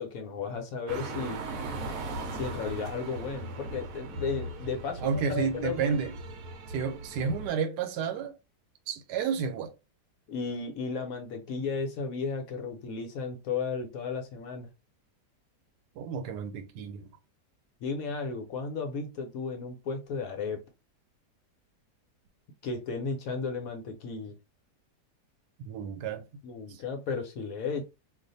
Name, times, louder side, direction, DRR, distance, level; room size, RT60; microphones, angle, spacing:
voice 1, 0.0-1.4 2.3-6.0 10.3-14.7 17.8-20.6 22.6-24.3 26.4-27.8, left 5 dB, 65° left, 1.0 m, -34 dB
sound 1, 0.9-7.5, right 2 dB, 65° right, 0.9 m, -38 dB
voice 2, 5.0-6.1 6.7-8.4 8.9-9.7 15.9-17.1 25.6-26.2 26.7-26.8, right 6 dB, 85° right, 1.2 m, -31 dB
2.5 x 2.4 x 3.9 m
omnidirectional pair, 1.8 m